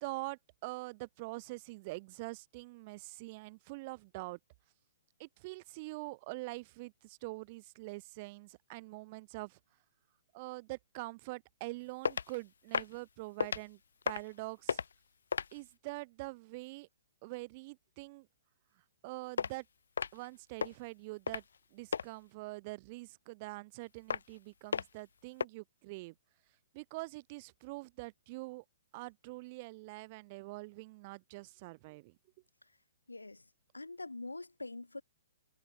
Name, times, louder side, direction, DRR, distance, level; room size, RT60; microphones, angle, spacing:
voice 1, 0.0-4.4 5.2-9.6 10.3-13.8 14.0-14.8 15.5-16.9 17.2-18.3 19.0-19.6 20.1-21.4 21.7-26.1 26.7-28.6 28.9-32.2, right 24 dB, 35° right, 1.1 m, -44 dB
sound 1, 12.1-12.4 12.7-13.0 13.4-13.6 14.0-14.4 14.7-14.9 15.3-15.6 19.4-19.5 20.0-20.3 20.6-20.8 21.3-21.6 21.9-22.1 24.1-24.4 24.7-25.0 25.4-25.5, left 6 dB, 65° left, 0.4 m, -34 dB
voice 2, 33.1-33.5 33.7-35.0, left 2 dB, 85° left, 7.3 m, -44 dB
figure-of-eight pair, 120°, 0 cm